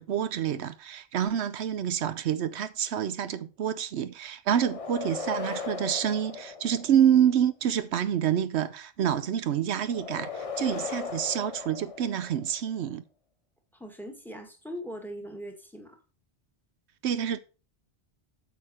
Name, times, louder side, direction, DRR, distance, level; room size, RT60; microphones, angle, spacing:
voice 1, 0.0-13.0 17.0-17.4, right 9 dB, 80° right, 0.9 m, -27 dB
sound 1, 4.5-7.3 9.9-12.6, left 5 dB, 35° left, 0.8 m, -37 dB
voice 2, 13.7-16.0, equal, ahead, 1.9 m, -40 dB
8.2 x 6.8 x 4.3 m
omnidirectional pair, 1.1 m